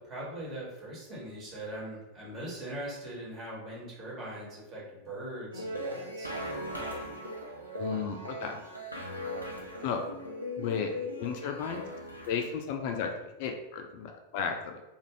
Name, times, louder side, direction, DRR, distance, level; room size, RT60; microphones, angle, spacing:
voice 1, 0.0-6.3, right 1 dB, 30° right, -6 dB, 1.3 m, -41 dB
sound 1, 5.5-12.5, equal, 90° right, 0.5 m, -39 dB
voice 2, 7.8-8.6 9.8-10.0 10.6-10.9 11.2-11.8 12.3-13.1 13.4-14.8, left 7 dB, 45° left, 4 dB, 0.3 m, -33 dB
2.5 x 2.4 x 3.1 m, 0.97 s
figure-of-eight pair, 90°, 0 cm